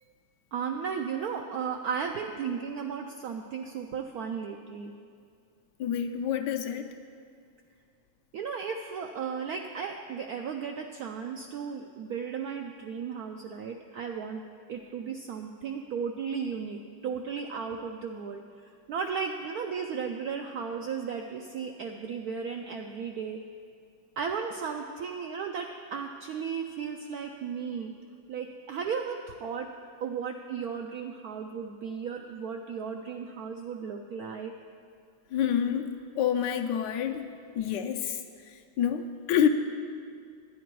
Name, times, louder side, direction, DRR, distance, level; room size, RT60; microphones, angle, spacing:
voice 1, 0.5-4.9 8.3-14.4 14.7-18.4 18.9-23.4 24.2-27.9 28.3-29.7 30.0-34.5, right 6 dB, 80° right, 3 dB, 0.8 m, -35 dB
voice 2, 5.8-6.9 35.3-37.3 37.6-38.2 38.8-39.5, left 9 dB, 75° left, 5 dB, 1.2 m, -27 dB
10.0 x 10.0 x 4.6 m, 2.3 s
omnidirectional pair, 2.1 m